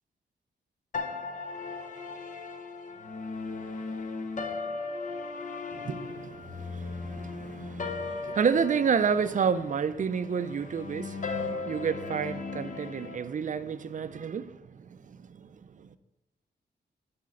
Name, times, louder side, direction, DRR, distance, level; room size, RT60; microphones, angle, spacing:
sound 1, 0.9-13.2, left 4 dB, 45° left, 0.7 m, -37 dB
voice 1, 5.7-16.0, right 6 dB, 45° right, 0.5 m, -30 dB
11.5 x 4.3 x 3.7 m
wide cardioid pair, 95°, 18 cm